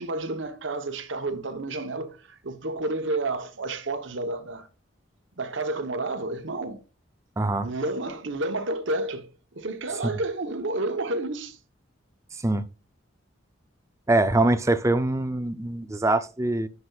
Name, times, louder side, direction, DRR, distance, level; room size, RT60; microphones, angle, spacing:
voice 1, 0.0-4.7 5.4-6.8 7.6-11.6, right 2 dB, 70° right, 0.9 m, -30 dB
voice 2, 7.4-7.7 10.0-10.1 12.4-12.7 14.1-16.7, right 2 dB, 15° right, 0.4 m, -23 dB
9.5 x 5.8 x 2.4 m
head